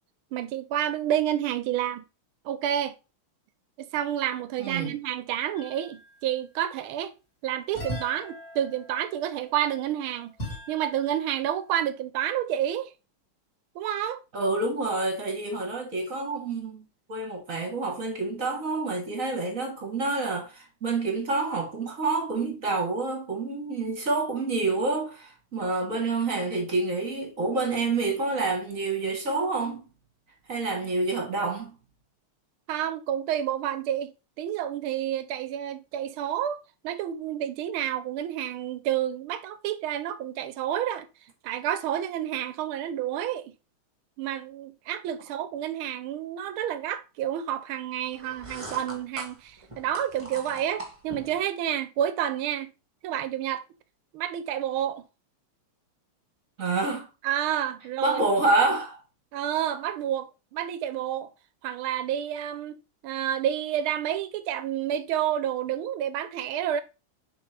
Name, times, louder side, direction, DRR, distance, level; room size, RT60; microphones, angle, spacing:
voice 1, 0.3-2.0 2.4-2.9 3.8-7.1 7.4-10.3 10.7-12.9 13.7-14.2 32.7-34.1 34.4-41.1 41.4-43.5 44.2-52.7 53.0-53.6 54.1-55.0 57.2-58.2 59.3-61.3 61.6-62.8 63.0-66.8, right 10 dB, 75° right, 1.5 m, -29 dB
voice 2, 4.6-4.9 14.3-29.9 30.5-31.7 56.6-57.1 58.0-59.0, right 3 dB, 40° right, 1.6 m, -28 dB
sound 1, 5.5-6.3 7.7-11.4, equal, 30° left, 3.9 m, -40 dB
sound 2, 48.1-51.4, right 2 dB, 15° right, 1.4 m, -41 dB
7.1 x 4.5 x 3.3 m
omnidirectional pair, 2.4 m